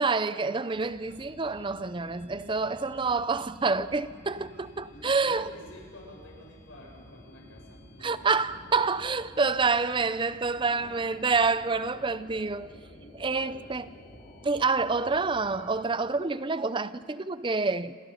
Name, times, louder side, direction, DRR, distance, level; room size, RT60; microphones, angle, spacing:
voice 1, 0.0-5.5 8.0-12.7 13.1-13.9 14.4-17.9, right 4 dB, 20° right, 0.5 m, -27 dB
sound 1, 0.7-15.7, equal, 35° left, 4.7 m, -51 dB
voice 2, 4.4-8.6 10.6-10.9 11.6-11.7 12.7-13.9, equal, 65° left, 7.6 m, -50 dB
28.0 x 27.0 x 5.6 m
head